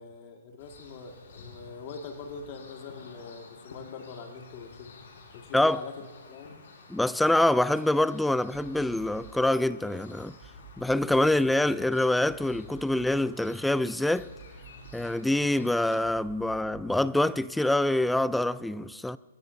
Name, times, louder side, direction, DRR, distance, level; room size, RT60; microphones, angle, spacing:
voice 1, 0.0-4.9 5.3-6.6, left 5 dB, 40° left, 1.9 m, -43 dB
sound 1, 0.6-16.1, left 4 dB, 60° left, 5.0 m, -52 dB
voice 2, 6.9-10.4 10.8-14.3 14.9-19.2, left 1 dB, ahead, 0.4 m, -25 dB
sound 2, 8.5-17.1, right 4 dB, 35° right, 3.3 m, -52 dB
23.5 x 22.0 x 2.7 m
hypercardioid pair, 140°, 0 cm